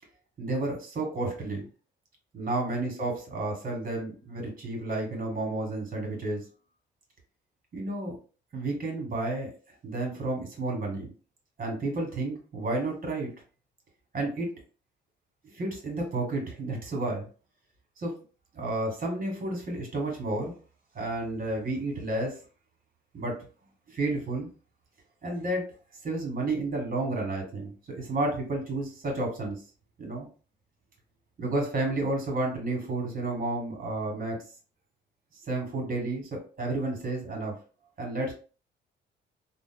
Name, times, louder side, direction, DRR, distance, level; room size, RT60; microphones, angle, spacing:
voice 1, 0.4-1.6 2.3-6.4 7.7-8.1 8.5-9.5 9.8-11.1 11.6-13.3 14.1-14.5 15.4-17.3 18.0-18.1 18.5-20.5 20.9-22.4 23.1-23.4 23.9-24.5 25.2-25.6 26.0-29.6 30.0-30.3 31.4-34.4 35.4-37.5 38.0-38.3, right 2 dB, 45° right, 1 dB, 1.4 m, -31 dB
3.3 x 2.1 x 2.3 m, 0.37 s
cardioid pair, 90°, 20 cm